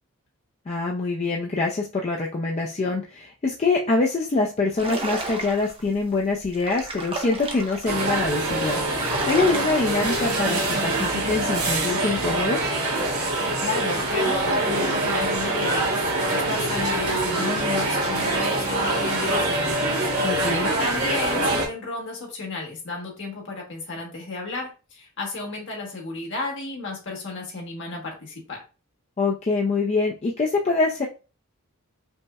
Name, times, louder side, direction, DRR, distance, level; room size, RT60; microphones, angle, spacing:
voice 1, 0.7-12.7 20.2-20.7 29.2-31.1, left 3 dB, 30° left, -2 dB, 0.3 m, -25 dB
sound 1, 4.8-5.8 6.4-7.9 8.5-8.6 8.8-10.2, right 2 dB, 25° right, 0.6 m, -32 dB
sound 2, 7.8-21.7, right 2 dB, 80° right, 1.3 m, -24 dB
voice 2, 13.6-20.5 20.8-28.6, left 3 dB, 55° left, 0 dB, 1.3 m, -33 dB
Laughter, 16.9-21.4, left 3 dB, 85° left, 1.6 m, -40 dB
5.3 x 2.0 x 2.3 m, 0.32 s
head